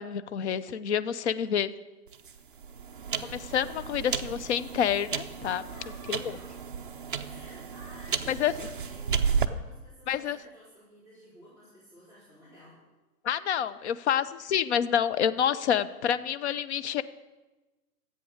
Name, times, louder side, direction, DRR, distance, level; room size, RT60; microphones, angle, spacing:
voice 1, 0.0-1.7 3.2-5.6 6.1-6.2 8.3-8.5 10.1-10.4 13.2-17.0, left 9 dB, 45° left, 14 dB, 0.6 m, -28 dB
sound 1, 2.1-9.4, right 6 dB, 35° right, 0.4 m, -33 dB
voice 2, 5.7-6.5 7.2-12.8, equal, 15° left, -11 dB, 4.1 m, -53 dB
13.0 x 8.5 x 6.4 m, 1.1 s
hypercardioid pair, 160°, 47 cm